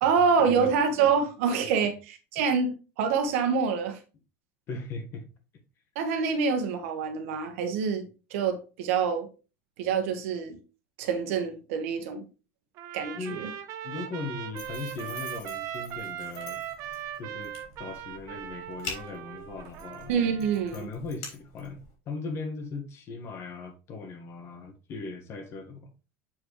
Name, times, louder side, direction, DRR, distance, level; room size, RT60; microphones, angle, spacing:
voice 1, 0.0-4.0 5.9-8.0 8.3-9.3 9.8-10.6 11.0-12.2 12.9-13.5 20.1-20.9, right 6 dB, 75° right, 1.4 m, -26 dB
voice 2, 4.7-5.2 13.2-13.5 13.8-17.5 17.8-20.1 20.7-21.8 22.1-25.9, left 3 dB, 40° left, 1.4 m, -38 dB
Trumpet, 12.8-20.9, right 11 dB, 50° right, 0.9 m, -39 dB
sound 1, 14.6-21.9, left 4 dB, 65° left, 3.4 m, -45 dB
7.4 x 4.6 x 3.1 m
supercardioid pair, 145°, 7 cm